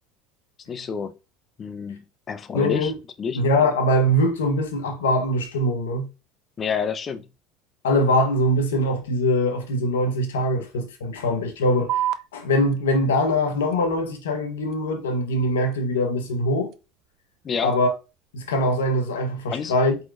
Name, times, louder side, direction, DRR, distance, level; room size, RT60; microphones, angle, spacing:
voice 1, 0.7-1.1 1.6-2.9 3.2-3.4 6.6-7.2 17.4-17.7 19.5-19.7, left 6 dB, 35° left, 0.6 m, -29 dB
voice 2, 2.5-2.9 3.3-6.1 7.8-12.1 12.3-16.7 17.6-17.9 18.3-20.0, left 1 dB, 90° left, 1.0 m, -22 dB
sound 1, 11.9-18.9, right 12 dB, 60° right, 0.4 m, -36 dB
4.4 x 4.2 x 2.5 m
hypercardioid pair, 90°, 0 cm